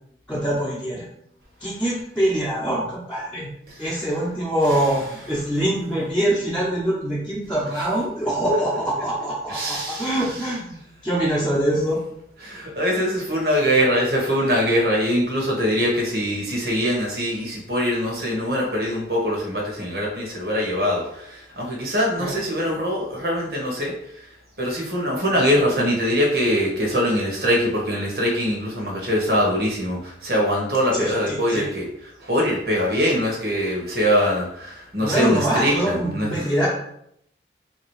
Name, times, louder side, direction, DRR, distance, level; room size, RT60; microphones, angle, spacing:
voice 1, 0.3-1.1 1.6-3.5 3.8-10.8 11.0-12.0 22.2-22.3 30.9-31.6 35.0-36.7, right 1 dB, 5° left, -10 dB, 1.1 m, -24 dB
voice 2, 9.5-10.2 12.4-23.9 24.6-31.9 32.2-36.5, equal, 55° right, -2 dB, 1.4 m, -23 dB
3.7 x 2.9 x 4.8 m, 0.73 s
head